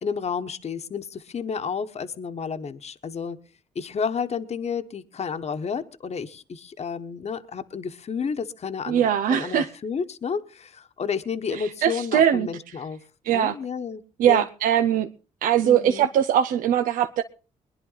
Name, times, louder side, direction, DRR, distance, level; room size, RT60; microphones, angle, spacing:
voice 1, 0.0-3.4 3.7-13.0 13.3-14.0 14.3-14.5 15.6-16.1, left 6 dB, 50° left, 1.1 m, -31 dB
voice 2, 8.9-9.7 11.5-12.5 13.2-13.6 14.2-15.1 15.4-17.2, right 10 dB, 85° right, 0.7 m, -21 dB
21.5 x 10.5 x 4.0 m
supercardioid pair, 60°, 14 cm